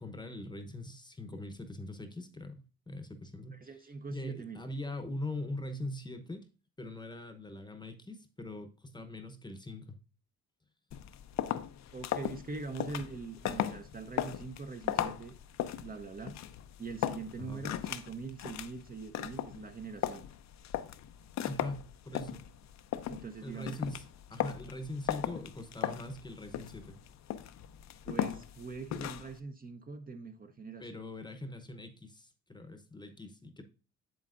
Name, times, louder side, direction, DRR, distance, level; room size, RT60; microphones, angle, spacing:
voice 1, 0.0-3.6 4.1-6.5 6.8-10.0 17.4-17.6 21.4-22.5 23.4-24.0 24.3-27.0 30.8-33.6, left 1 dB, 15° left, 0.8 m, -42 dB
voice 2, 3.5-4.6 11.9-15.3 15.8-16.4 16.8-20.2 23.1-23.8 28.1-31.0, right 4 dB, 30° right, 0.7 m, -43 dB
sound 1, 10.9-29.4, left 11 dB, 65° left, 0.6 m, -38 dB
7.7 x 7.4 x 2.5 m
cardioid pair, 90°, 30 cm